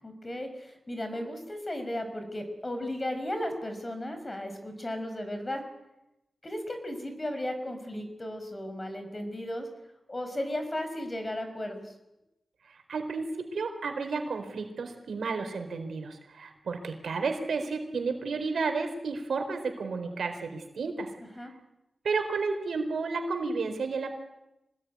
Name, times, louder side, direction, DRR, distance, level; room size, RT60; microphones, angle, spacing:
voice 1, 0.0-5.6 6.4-9.7 10.1-11.9 21.4-21.5, left 1 dB, 25° left, 7 dB, 5.5 m, -35 dB
voice 2, 12.7-21.1 22.0-24.1, right 4 dB, 85° right, 6 dB, 4.3 m, -32 dB
25.5 x 19.5 x 9.7 m, 0.91 s
wide cardioid pair, 95°, 0 cm